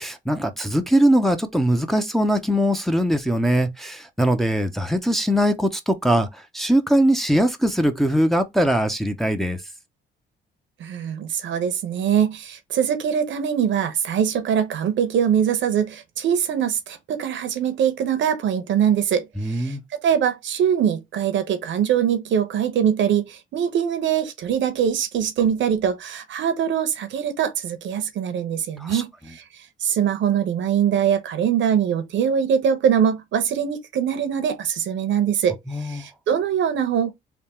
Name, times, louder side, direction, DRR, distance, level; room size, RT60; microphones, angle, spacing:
voice 1, 0.0-6.3 6.5-9.6 19.4-19.8 28.8-29.0 35.7-36.0, equal, ahead, 0.7 m, -21 dB
voice 2, 10.8-19.8 20.0-29.4 29.8-37.1, right 8 dB, 70° right, 0.9 m, -22 dB
3.5 x 2.4 x 4.3 m
cardioid pair, 90°, 20 cm